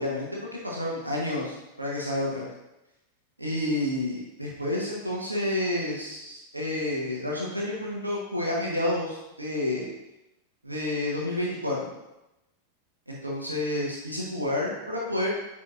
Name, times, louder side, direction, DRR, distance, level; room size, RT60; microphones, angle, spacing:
voice 1, 0.0-2.5 3.4-9.9 10.6-11.9 13.1-15.3, left 1 dB, 85° right, -3 dB, 1.2 m, -30 dB
8.7 x 4.3 x 2.5 m, 0.93 s
figure-of-eight pair, 90°, 0 cm